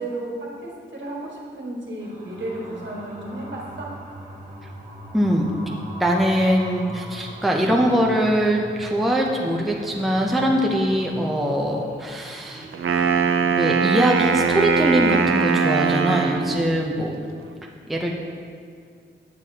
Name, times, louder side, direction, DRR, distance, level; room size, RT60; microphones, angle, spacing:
voice 1, 0.0-3.9, right 1 dB, 65° right, -3 dB, 1.6 m, -33 dB
sound 1, 2.0-13.4, equal, 35° right, 1.7 m, -40 dB
voice 2, 5.1-5.5 6.0-12.7 13.5-17.2 17.9-18.1, equal, ahead, -1 dB, 0.5 m, -22 dB
Wind instrument woodwind instrument, 12.7-16.7, right 5 dB, 85° right, 0.5 m, -21 dB
9.0 x 8.2 x 2.8 m, 2.1 s
wide cardioid pair, 155°, 21 cm